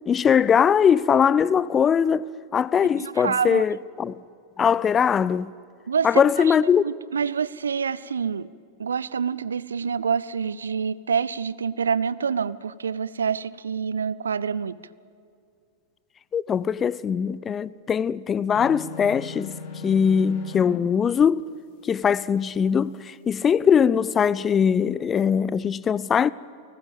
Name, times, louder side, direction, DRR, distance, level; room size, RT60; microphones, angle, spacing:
voice 1, 0.1-2.3 2.5-4.2 4.6-5.5 6.0-6.8 16.3-19.5 19.8-21.4 21.9-26.3, left 7 dB, 20° left, 0.5 m, -21 dB
voice 2, 3.0-3.7 5.9-8.5 8.8-14.8, right 6 dB, 70° right, 0.6 m, -27 dB
sound 1, 18.5-20.8, left 5 dB, 45° left, 2.4 m, -37 dB
29.5 x 19.0 x 8.9 m
figure-of-eight pair, 90°, 0 cm